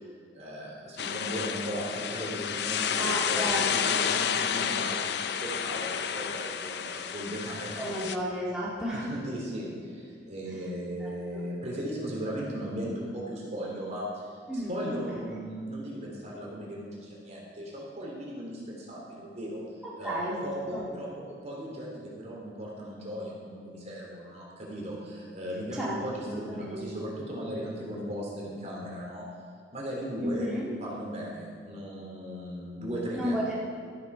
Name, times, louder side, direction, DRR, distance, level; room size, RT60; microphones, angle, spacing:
voice 1, 0.3-8.1 8.9-14.3 14.5-19.6 20.0-29.3 29.7-33.4, equal, 40° right, -3 dB, 3.4 m, -37 dB
sound 1, 1.0-8.2, left 7 dB, 65° left, 0.6 m, -30 dB
voice 2, 3.0-3.9 7.8-9.2 10.5-10.6 11.0-11.4 14.5-15.2 19.8-20.8 25.7-26.0 26.3-26.9 30.2-30.7 33.1-33.5, equal, 5° right, -8 dB, 2.0 m, -33 dB
13.5 x 11.0 x 4.8 m, 2.2 s
head